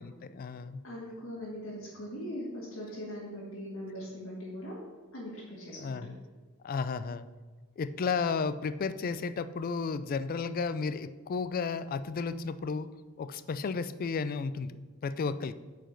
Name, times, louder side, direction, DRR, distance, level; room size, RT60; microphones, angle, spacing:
voice 1, 0.0-0.8 5.8-6.2 6.6-7.3 7.8-12.9 13.2-14.8 15.0-15.5, left 5 dB, 45° left, 14 dB, 0.3 m, -33 dB
voice 2, 0.8-4.8 5.1-6.0, equal, 70° left, -6 dB, 1.9 m, -41 dB
8.9 x 4.8 x 4.5 m, 1.3 s
head